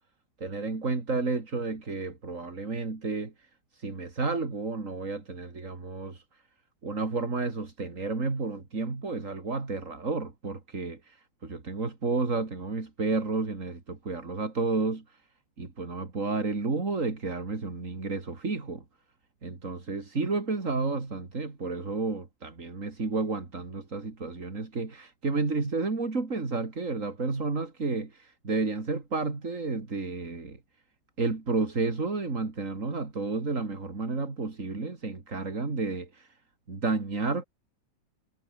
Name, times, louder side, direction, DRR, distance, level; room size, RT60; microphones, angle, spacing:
voice 1, 0.4-3.3 3.7-6.2 6.8-15.2 15.6-18.8 19.4-30.6 31.2-36.3 36.7-37.4, right 3 dB, 45° right, 3.4 m, -31 dB
omnidirectional pair, 2.0 m